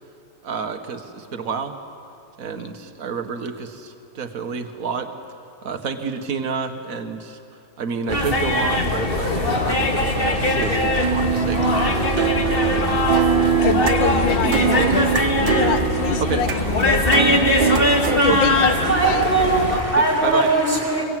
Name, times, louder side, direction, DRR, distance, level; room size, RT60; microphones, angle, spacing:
voice 1, 0.4-1.8 2.4-5.1 5.6-7.4 7.8-13.1 14.4-15.0 16.2-16.4 18.3-18.6 20.0-20.5, right 6 dB, 50° right, 6 dB, 1.9 m, -29 dB
sound 1, 8.1-19.8, left 1 dB, 30° left, 2.1 m, -21 dB
sound 2, 10.5-18.2, right 7 dB, 90° right, 2.0 m, -23 dB
voice 2, 13.6-15.1 15.4-17.5 18.1-18.7 19.0-19.2, left 7 dB, 90° left, 10 dB, 1.9 m, -25 dB
voice 3, 18.6-21.0, right 3 dB, 5° right, -1 dB, 5.9 m, -20 dB
26.0 x 22.0 x 9.2 m, 2.6 s
omnidirectional pair, 2.0 m